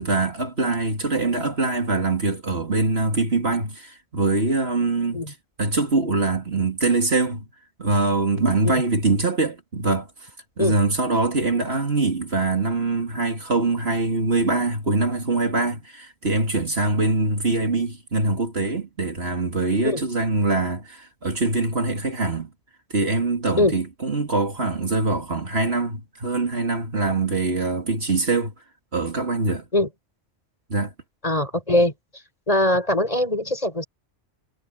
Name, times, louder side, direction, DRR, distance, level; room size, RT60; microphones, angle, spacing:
voice 1, 0.0-5.2 5.6-7.5 7.8-10.3 10.6-22.5 22.9-28.5 28.9-29.7 30.7-30.9, right 3 dB, 55° right, 3.0 m, -23 dB
voice 2, 31.2-31.9 32.5-33.8, left 1 dB, 30° left, 5.6 m, -21 dB
omnidirectional pair, 1.2 m